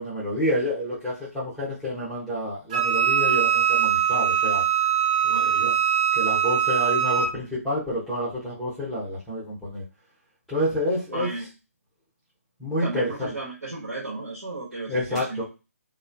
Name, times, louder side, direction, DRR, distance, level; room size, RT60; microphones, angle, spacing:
voice 1, 0.0-4.6 5.2-5.7 6.2-9.8 10.5-11.3 12.6-13.3 14.9-15.4, equal, ahead, -11 dB, 0.8 m, -28 dB
Wind instrument woodwind instrument, 2.7-7.3, right 9 dB, 25° right, 0.6 m, -22 dB
voice 2, 5.3-5.8 11.1-11.5 12.8-15.4, right 2 dB, 70° right, -5 dB, 1.0 m, -34 dB
3.0 x 2.0 x 2.5 m, 0.28 s
figure-of-eight pair, 145°, 8 cm